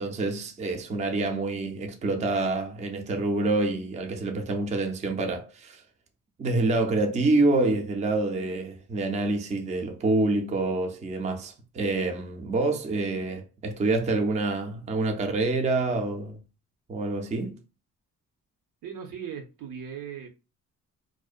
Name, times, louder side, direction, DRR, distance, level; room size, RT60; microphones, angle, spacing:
voice 1, 0.0-5.8 6.4-16.4 16.9-17.6, right 2 dB, 20° right, 0.4 m, -27 dB
voice 2, 18.8-20.3, right 7 dB, 75° right, 0.7 m, -38 dB
2.5 x 2.1 x 2.3 m
cardioid pair, 110°, 33 cm